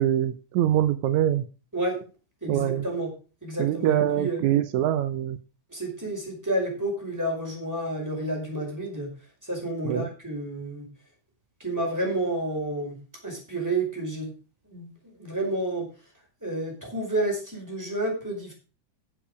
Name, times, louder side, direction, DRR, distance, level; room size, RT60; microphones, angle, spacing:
voice 1, 0.0-1.5 2.5-2.8 3.6-5.4 9.9-10.1, right 11 dB, 80° right, 12 dB, 2.1 m, -24 dB
voice 2, 2.4-3.1 3.4-4.4 5.7-9.1 9.5-10.9 11.6-13.0 13.2-14.3 14.7-14.9 15.2-15.9 16.4-18.5, right 1 dB, 5° right, 0 dB, 5.0 m, -30 dB
12.5 x 7.6 x 5.1 m, 0.35 s
omnidirectional pair, 3.3 m